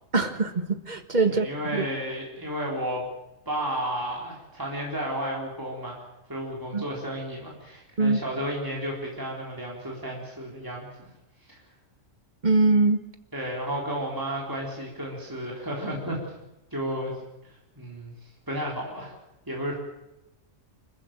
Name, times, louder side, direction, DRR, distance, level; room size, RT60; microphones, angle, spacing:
voice 1, 0.1-1.4 1.7-1.8 6.7-6.8 8.0-8.2 12.4-13.0, right 3 dB, 35° right, 8 dB, 1.7 m, -22 dB
voice 2, 1.2-3.0 3.5-6.0 6.3-11.1 11.5-11.6 13.3-16.2 16.7-17.2 17.5-18.1 18.5-19.1 19.5-19.8, equal, 15° right, -2 dB, 4.2 m, -32 dB
25.0 x 15.0 x 9.1 m, 0.90 s
omnidirectional pair, 1.3 m